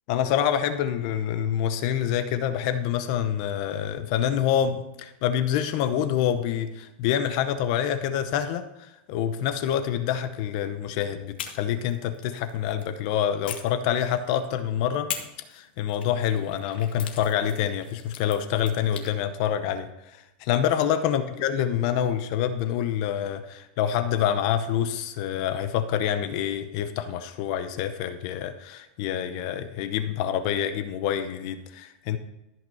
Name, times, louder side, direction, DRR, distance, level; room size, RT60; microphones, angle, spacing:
voice 1, 0.1-15.2 15.5-19.9 20.4-32.2, left 9 dB, 40° left, 10 dB, 0.8 m, -26 dB
sound 1, 11.4-12.9 13.5-14.5 15.1-19.1, left 8 dB, 75° left, 1.9 m, -41 dB
14.0 x 5.9 x 5.4 m, 0.94 s
supercardioid pair, 170°, 5 cm